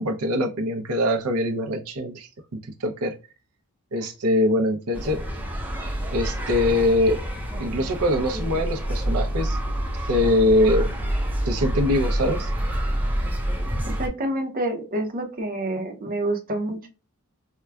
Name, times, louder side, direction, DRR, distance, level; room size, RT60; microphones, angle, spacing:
voice 1, 0.0-3.1 3.9-5.2 6.1-7.2 7.6-9.6 10.1-10.9 11.5-12.5, left 1 dB, 85° right, 5 dB, 0.6 m, -23 dB
sound 1, 4.9-14.1, equal, 10° right, 0.6 m, -27 dB
voice 2, 14.0-16.9, right 1 dB, 40° right, 4 dB, 0.7 m, -28 dB
4.5 x 2.2 x 2.3 m, 0.31 s
head